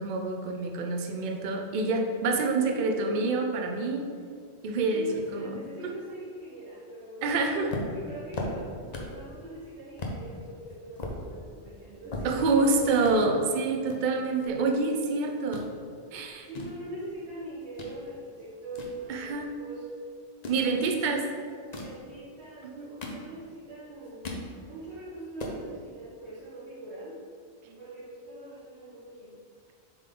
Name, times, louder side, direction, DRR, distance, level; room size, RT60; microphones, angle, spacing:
voice 1, 0.0-4.0 4.6-5.9 7.2-7.7 12.2-15.7 16.1-16.5 19.1-19.4 20.5-21.2 22.8-22.9 27.6-27.8, right 3 dB, 50° right, 3 dB, 0.7 m, -27 dB
voice 2, 2.6-3.0 4.9-13.3 16.4-19.9 20.5-21.2 21.6-24.3 24.6-27.2 27.8-29.4, right 2 dB, 70° right, -11 dB, 1.7 m, -42 dB
sound 1, 7.7-9.3 9.6-9.7 10.0-10.2 10.7-12.7 13.0-13.2 13.9-15.1 15.3-15.7 16.3-18.0 18.4-19.7 20.3-20.7 21.5-22.0 22.6-23.6 23.9-24.5 24.9-25.0 25.2-25.6, left 2 dB, 40° left, 0.8 m, -38 dB
7.2 x 3.8 x 3.7 m, 2.1 s
omnidirectional pair, 1.2 m